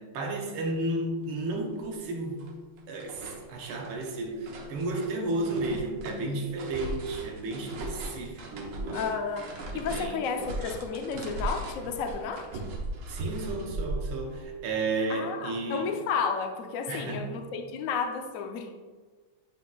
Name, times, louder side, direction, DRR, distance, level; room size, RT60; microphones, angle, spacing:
voice 1, 0.0-2.5 2.9-9.2 9.7-10.2 13.1-16.0 16.9-17.4, right 2 dB, 85° right, 2 dB, 1.6 m, -33 dB
sound 1, 1.3-1.4 1.8-2.5 2.8-14.4, right 2 dB, 65° right, 1.5 m, -38 dB
voice 2, 8.9-12.5 15.1-18.7, left 5 dB, 75° left, 5 dB, 0.7 m, -32 dB
9.0 x 5.7 x 2.3 m, 1.4 s
omnidirectional pair, 2.3 m